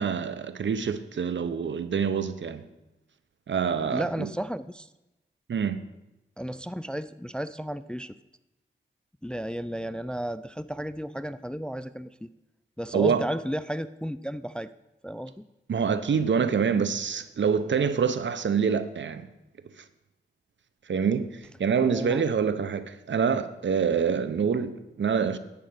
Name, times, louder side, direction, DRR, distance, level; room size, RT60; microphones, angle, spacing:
voice 1, 0.0-2.6 3.5-4.3 5.5-5.8 12.9-13.2 15.7-19.3 19.8-19.9 20.9-25.4, right 6 dB, 65° right, 0.6 m, -26 dB
voice 2, 3.9-4.9 6.4-8.2 9.2-12.3 12.8-14.7 15.0-15.4 21.9-22.2, equal, 5° left, 0.3 m, -33 dB
10.5 x 4.8 x 7.9 m
cardioid pair, 60°, 20 cm